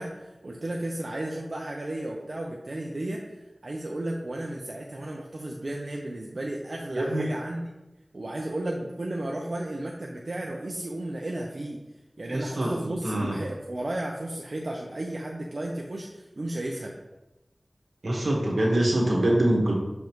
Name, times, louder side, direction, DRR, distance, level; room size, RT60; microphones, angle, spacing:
voice 1, 0.0-7.6 8.1-11.8 12.2-17.0, right 1 dB, 65° right, -1 dB, 0.7 m, -34 dB
voice 2, 6.9-7.3 12.3-13.4 18.0-19.8, right 1 dB, 85° right, -2 dB, 1.5 m, -24 dB
6.3 x 5.3 x 3.1 m, 1.0 s
wide cardioid pair, 50°, 0 cm